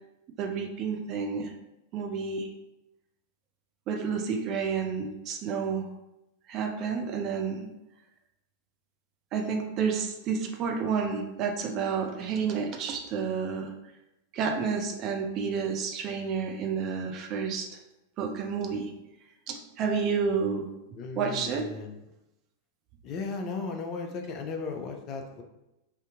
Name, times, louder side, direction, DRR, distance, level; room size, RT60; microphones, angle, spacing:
voice 1, 0.4-1.5 1.9-2.5 3.9-5.9 6.5-7.7 9.3-13.7 14.3-17.8 18.2-18.9 19.5-20.7 21.2-21.6, right 6 dB, 35° right, 3 dB, 0.5 m, -30 dB
voice 2, 21.0-21.9 23.0-25.4, left 4 dB, 35° left, 4 dB, 0.5 m, -36 dB
3.4 x 2.7 x 3.6 m, 0.93 s
figure-of-eight pair, 90°, 0 cm